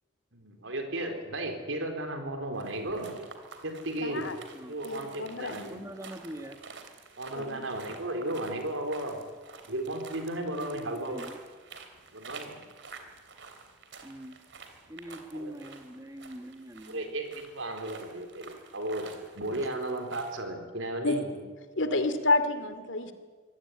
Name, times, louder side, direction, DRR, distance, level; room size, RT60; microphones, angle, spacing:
voice 1, 0.3-3.1 3.6-4.3 4.7-5.8 7.2-9.2 9.7-11.2 12.1-12.6 15.3-15.5 16.9-19.1 19.3-21.3, right 1 dB, 80° right, 5 dB, 4.0 m, -34 dB
sound 1, 2.5-20.4, right 4 dB, 65° right, 3.2 m, -50 dB
voice 2, 4.0-4.4 4.8-5.9 7.3-7.7 21.0-21.2 21.8-23.1, left 2 dB, 75° left, 9 dB, 2.5 m, -29 dB
voice 3, 5.7-6.6 10.5-11.4 14.0-14.4 14.9-17.1, right 1 dB, 15° right, 7 dB, 1.6 m, -43 dB
25.0 x 17.0 x 9.6 m, 1.5 s
head